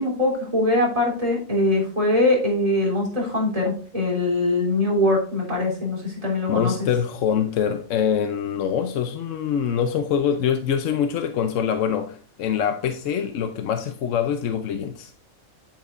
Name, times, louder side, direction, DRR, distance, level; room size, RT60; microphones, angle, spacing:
voice 1, 0.0-6.9, left 2 dB, 25° right, 3.6 m, -22 dB
voice 2, 6.5-15.1, left 8 dB, 65° left, 0.9 m, -24 dB
9.2 x 8.2 x 2.5 m
omnidirectional pair, 1.5 m